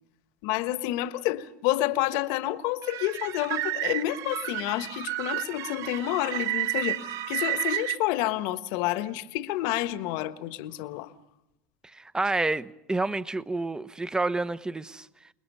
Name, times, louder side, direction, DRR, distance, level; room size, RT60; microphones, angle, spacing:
voice 1, 0.4-11.1, left 15 dB, 65° left, 1.4 m, -29 dB
sound 1, 2.8-8.0, right 15 dB, 50° right, 1.4 m, -31 dB
voice 2, 11.9-15.1, right 2 dB, 10° right, 1.0 m, -29 dB
29.0 x 20.5 x 5.6 m
hypercardioid pair, 85°, 7 cm